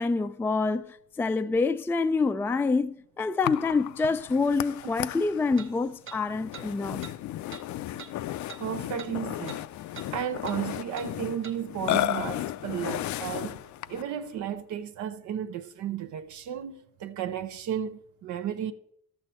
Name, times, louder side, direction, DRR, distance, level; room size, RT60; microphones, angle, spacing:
voice 1, 0.0-7.0, left 4 dB, 10° left, 0.3 m, -27 dB
Burping eructation, 3.4-14.1, left 14 dB, 70° left, 0.5 m, -34 dB
sound 1, 4.0-4.1 5.6-5.7 6.1-6.2 6.5-6.7 7.0-7.2 7.5-7.7 8.0-8.1 8.5-8.6 9.0-9.1 9.5-9.6 9.9-10.1 10.5-10.6 11.0-11.1 11.4-11.6, right 7 dB, 40° right, 1.0 m, -44 dB
voice 2, 8.6-9.6 10.1-13.6 13.9-18.7, right 9 dB, 75° right, 0.7 m, -33 dB
13.0 x 6.6 x 4.4 m
cardioid pair, 90°, 30 cm